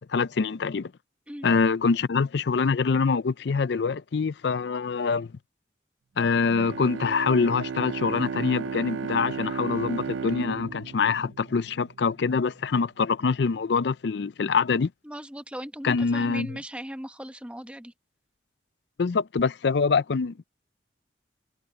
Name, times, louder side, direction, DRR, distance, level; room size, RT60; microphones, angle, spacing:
voice 1, 0.1-0.9 1.4-5.3 6.2-14.9 15.8-16.5 19.0-20.4, left 5 dB, 65° left, 0.5 m, -25 dB
Bowed string instrument, 6.5-12.0, right 5 dB, 85° right, 0.4 m, -34 dB
voice 2, 15.0-17.9, equal, 5° right, 1.1 m, -38 dB
head